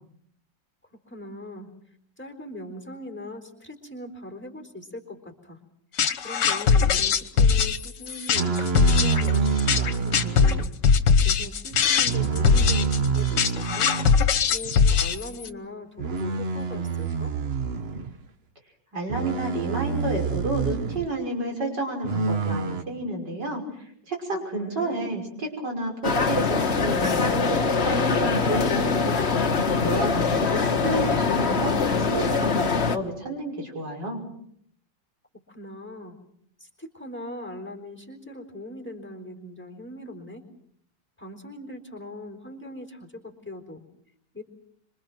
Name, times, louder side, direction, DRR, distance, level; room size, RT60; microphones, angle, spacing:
voice 1, 0.9-1.7 2.2-5.6 6.2-10.7 11.2-13.9 14.5-17.3 24.5-25.2 35.3-36.2 36.6-40.4 41.2-43.8 44.3-44.4, left 1 dB, 5° left, 4 dB, 3.9 m, -40 dB
sound 1, 6.0-15.5, left 6 dB, 75° left, 1.8 m, -21 dB
sound 2, 8.3-10.7 11.7-14.2 14.6-14.9 16.0-18.1 19.1-21.1 22.0-22.8, right 5 dB, 40° right, 1.2 m, -27 dB
voice 2, 18.9-29.3 29.8-34.2, right 1 dB, 70° right, 2 dB, 6.5 m, -31 dB
sound 3, 26.0-33.0, left 4 dB, 40° left, 1.5 m, -23 dB
26.0 x 25.0 x 6.1 m, 0.68 s
omnidirectional pair, 2.0 m